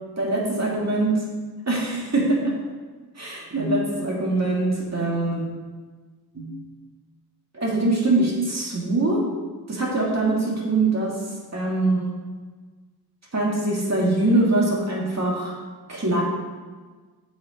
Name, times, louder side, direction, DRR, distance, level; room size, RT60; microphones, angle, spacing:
voice 1, 0.2-1.3 1.7-2.6 3.2-5.4 6.3-6.6 7.5-9.3 9.7-11.2 11.5-12.1 13.3-15.6 15.9-16.2, right 2 dB, 45° right, -3 dB, 2.4 m, -23 dB
8.3 x 5.8 x 5.1 m, 1.4 s
cardioid pair, 70°, 38 cm